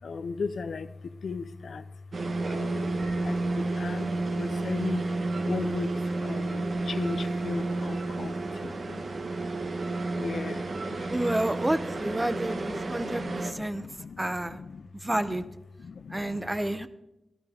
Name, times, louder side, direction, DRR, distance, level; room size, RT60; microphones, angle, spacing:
voice 1, 0.0-1.9 2.5-9.1 10.2-11.1 12.0-15.5 15.8-16.4, left 4 dB, 75° left, 13 dB, 0.6 m, -38 dB
sound 1, 2.1-13.5, right 2 dB, 55° right, 1.2 m, -31 dB
voice 2, 11.1-13.9 14.2-14.6 14.9-15.4 16.1-16.9, right 1 dB, 15° right, 11 dB, 0.6 m, -29 dB
13.5 x 13.0 x 3.5 m, 0.92 s
wide cardioid pair, 130°, 0 cm